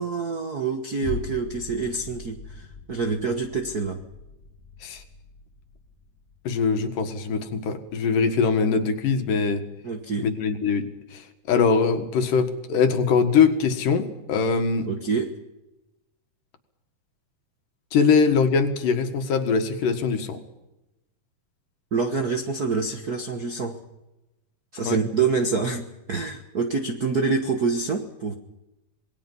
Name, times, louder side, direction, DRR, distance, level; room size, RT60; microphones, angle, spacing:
voice 1, 0.0-4.0 9.8-10.3 14.9-15.3 21.9-23.8 24.7-28.3, right 4 dB, 55° right, 5 dB, 1.0 m, -26 dB
sound 1, 1.0-9.6 10.1-10.2, left 5 dB, 30° left, 2.2 m, -42 dB
voice 2, 6.4-9.6 10.2-14.9 17.9-20.4 24.9-25.0, left 5 dB, 80° left, 7 dB, 3.3 m, -22 dB
27.0 x 20.5 x 5.5 m, 0.96 s
omnidirectional pair, 3.8 m